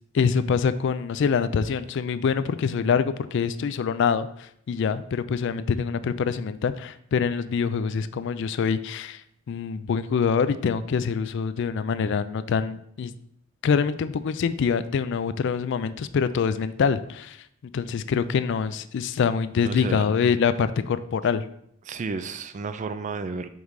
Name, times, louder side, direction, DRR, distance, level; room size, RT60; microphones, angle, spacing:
voice 1, 0.1-13.1 13.6-17.4 17.7-21.5, left 6 dB, 60° left, 13 dB, 0.3 m, -25 dB
voice 2, 19.6-20.0 21.9-23.5, right 4 dB, 35° right, 11 dB, 0.3 m, -32 dB
5.3 x 3.8 x 4.7 m, 0.70 s
head